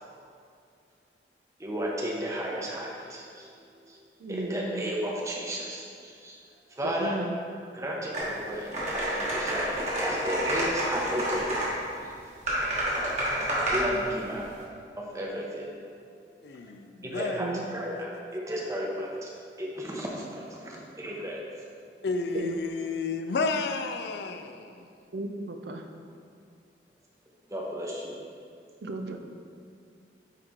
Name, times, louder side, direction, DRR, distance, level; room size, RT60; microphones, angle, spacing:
voice 1, 1.6-3.5 3.9-4.0 4.3-6.4 6.7-7.2 7.7-11.5 12.0-12.1 13.7-14.5 15.0-15.8 17.0-19.3 19.6-21.4 27.5-28.2, equal, 20° right, -3 dB, 0.8 m, -33 dB
voice 2, 4.2-4.9 6.8-7.4 17.4-17.6 22.3-22.6 25.1-25.9 28.8-29.2, right 2 dB, 70° right, 5 dB, 0.5 m, -34 dB
sound 1, 8.1-8.3 8.7-11.7 12.5-13.8, right 1 dB, 40° right, 1.4 m, -28 dB
voice 3, 16.4-17.5 22.0-24.9, left 3 dB, 70° left, 7 dB, 0.4 m, -31 dB
9.1 x 3.1 x 3.7 m, 2.3 s
head